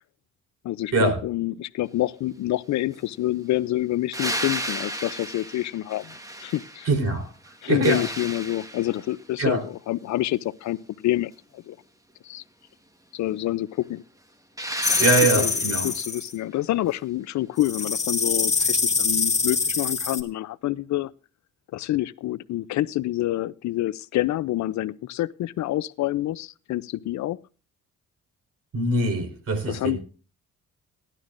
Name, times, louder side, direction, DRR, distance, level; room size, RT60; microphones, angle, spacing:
voice 1, 0.6-6.1 6.4-6.9 7.6-11.8 12.2-12.4 13.1-14.0 14.9-15.0 15.4-21.1 21.7-27.4 29.7-30.0, left 15 dB, 70° left, 0.5 m, -27 dB
sound 1, 4.1-7.0 7.4-9.2 14.6-16.0 18.6-18.7, right 1 dB, 10° right, 1.3 m, -34 dB
voice 2, 6.8-7.3 7.7-8.0 9.4-9.6 15.0-15.9 28.7-30.0, right 2 dB, 55° right, 3.9 m, -23 dB
sound 2, 14.8-16.3 17.6-20.2, left 4 dB, 20° left, 1.8 m, -24 dB
17.0 x 11.5 x 2.5 m
cardioid pair, 90°, 30 cm